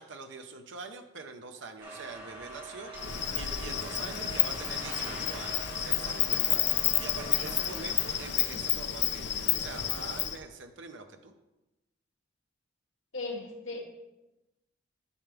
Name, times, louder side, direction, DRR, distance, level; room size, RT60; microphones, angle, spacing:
voice 1, 0.0-11.3, right 4 dB, 65° right, 6 dB, 0.7 m, -44 dB
sound 1, 1.8-8.3, right 2 dB, 25° right, 2.4 m, -44 dB
Insect, 3.0-10.4, left 11 dB, 60° left, 0.6 m, -30 dB
voice 2, 13.1-13.8, left 3 dB, 85° left, -1 dB, 1.8 m, -36 dB
12.0 x 5.8 x 3.4 m, 1.0 s
head